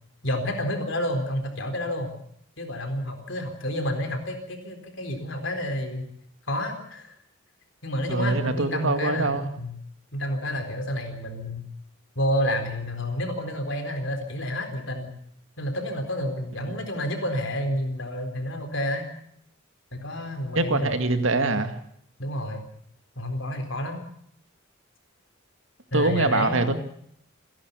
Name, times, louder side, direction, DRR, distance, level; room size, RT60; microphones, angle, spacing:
voice 1, 0.2-2.1 2.6-6.1 6.5-7.1 7.8-9.7 10.1-11.6 12.2-15.1 15.6-19.1 19.9-21.0 22.2-22.6 23.2-24.0 25.9-26.7, left 1 dB, 55° left, 6 dB, 4.1 m, -29 dB
voice 2, 8.1-9.5 20.6-21.8 25.9-26.7, right 2 dB, 65° right, 8 dB, 2.1 m, -24 dB
27.5 x 11.5 x 8.2 m, 0.69 s
head